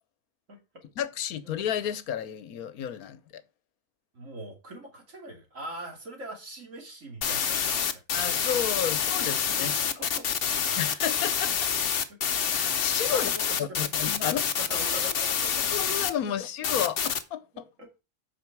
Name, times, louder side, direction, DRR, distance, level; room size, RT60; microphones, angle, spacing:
voice 1, 1.0-3.4 8.1-9.8 10.8-11.5 12.6-13.3 13.6-14.5 15.7-17.6, left 9 dB, 80° left, 1.3 m, -31 dB
voice 2, 4.1-8.2 9.5-9.7 10.1-10.3 11.5-11.6 12.1-12.2 13.1-13.9 14.6-15.6 16.2-16.3 17.5-18.0, right 1 dB, 60° right, 3.1 m, -42 dB
sound 1, 7.2-16.1 16.6-17.2, left 7 dB, 50° left, 0.9 m, -27 dB
8.9 x 6.0 x 4.6 m
omnidirectional pair, 1.5 m